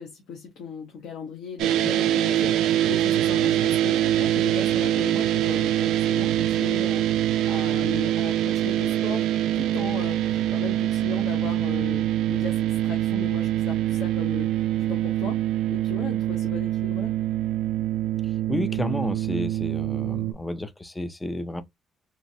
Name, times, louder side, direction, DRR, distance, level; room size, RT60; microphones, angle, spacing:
voice 1, 0.0-7.1 7.5-9.2 9.5-15.4 15.7-17.1, left 4 dB, 65° left, 0.9 m, -37 dB
sound 1, 1.6-20.3, right 12 dB, 85° right, 0.3 m, -24 dB
voice 2, 18.5-21.6, left 1 dB, 5° left, 0.3 m, -31 dB
3.0 x 2.5 x 2.6 m
cardioid pair, 175°, 0 cm